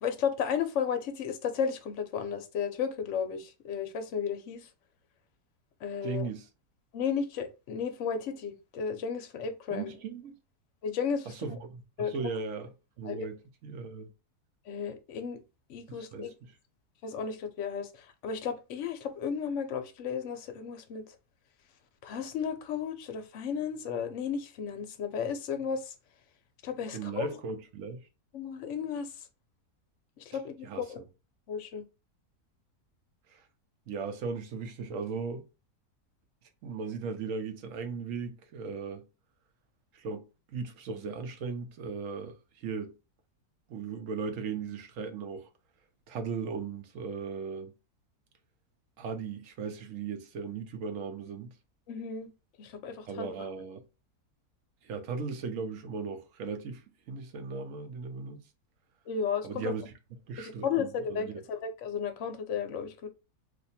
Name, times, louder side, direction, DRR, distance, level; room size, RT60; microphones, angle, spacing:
voice 1, 0.0-4.7 5.8-6.2 6.9-9.9 10.8-11.3 12.0-12.1 13.0-13.3 14.7-15.4 15.7-16.3 17.0-21.1 22.0-25.9 26.6-27.3 28.3-29.1 30.2-30.5 30.9-31.0 31.5-31.8 51.9-52.3 52.6-53.3 59.1-59.7 60.4-63.1, left 7 dB, 65° left, 0.8 m, -34 dB
voice 2, 6.0-6.5 9.7-10.3 11.3-14.1 15.9-16.6 26.9-28.0 30.6-31.0 33.3-33.4 33.9-35.4 36.6-39.0 39.9-40.2 40.5-42.9 43.7-45.5 46.1-47.7 49.0-51.5 53.1-53.8 54.8-58.4 59.4-59.9 60.3-61.4, right 5 dB, 65° right, 0.9 m, -37 dB
2.7 x 2.5 x 4.1 m
omnidirectional pair, 1.7 m